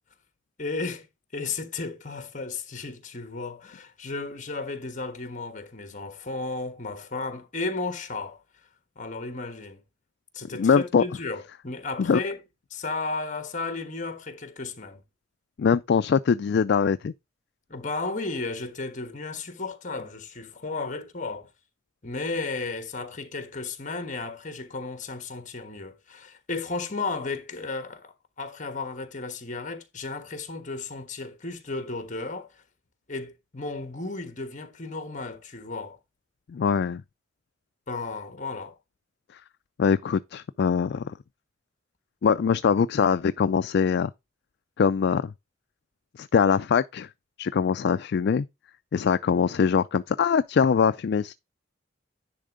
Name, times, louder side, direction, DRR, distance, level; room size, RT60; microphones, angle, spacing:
voice 1, 0.6-1.1 1.3-8.4 9.0-9.8 10.3-12.4 12.7-15.0 17.7-21.5 22.0-32.6 33.1-36.0 37.9-38.8, left 3 dB, 40° left, 1.3 m, -34 dB
voice 2, 10.6-11.0 12.0-12.2 15.6-17.1 36.5-37.0 39.8-41.1 42.2-44.1 44.8-45.3 46.2-47.1 47.4-48.5 48.9-51.3, left 6 dB, 55° left, 0.3 m, -22 dB
10.5 x 3.5 x 5.0 m
head